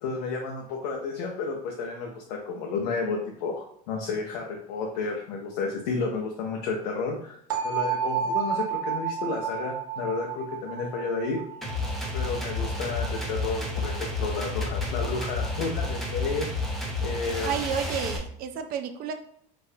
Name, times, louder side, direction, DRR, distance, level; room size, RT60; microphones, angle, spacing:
voice 1, 0.0-7.4 7.6-11.4 12.1-16.5 17.0-17.5, left 4 dB, 80° left, 0 dB, 0.7 m, -31 dB
sound 1, 7.5-13.3, right 7 dB, 85° right, 1.0 m, -31 dB
sound 2, 11.6-18.2, left 2 dB, ahead, 0.8 m, -30 dB
voice 2, 17.4-19.1, right 7 dB, 50° right, 7 dB, 0.5 m, -31 dB
3.9 x 2.5 x 2.7 m, 0.68 s
supercardioid pair, 110°, 20 cm